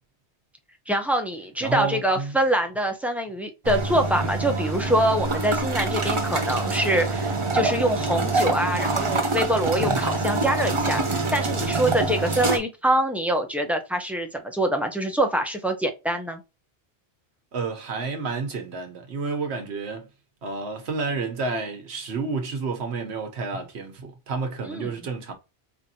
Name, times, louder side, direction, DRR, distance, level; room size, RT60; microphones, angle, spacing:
voice 1, 0.9-16.4 24.7-24.9, right 1 dB, ahead, 0.5 m, -25 dB
voice 2, 1.6-2.4 9.8-10.1 17.5-20.1 20.4-25.3, right 4 dB, 85° right, 1.2 m, -30 dB
sound 1, 3.6-12.6, right 3 dB, 30° right, 0.8 m, -25 dB
4.9 x 2.6 x 2.7 m
omnidirectional pair, 1.1 m